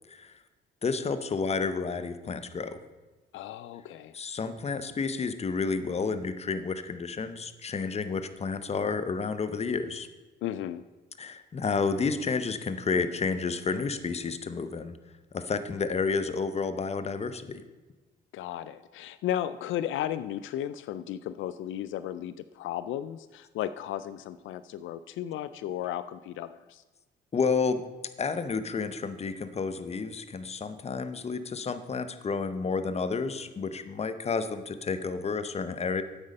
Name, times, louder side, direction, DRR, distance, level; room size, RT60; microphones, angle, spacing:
voice 1, 0.8-2.8 4.1-10.1 11.2-15.0 15.3-17.6 27.3-27.8 28.2-36.0, left 5 dB, 30° left, 11 dB, 0.8 m, -30 dB
voice 2, 3.3-4.1 10.4-10.8 18.3-26.8, left 11 dB, 80° left, 13 dB, 0.4 m, -34 dB
8.7 x 8.2 x 5.3 m, 1.2 s
cardioid pair, 90°, 20 cm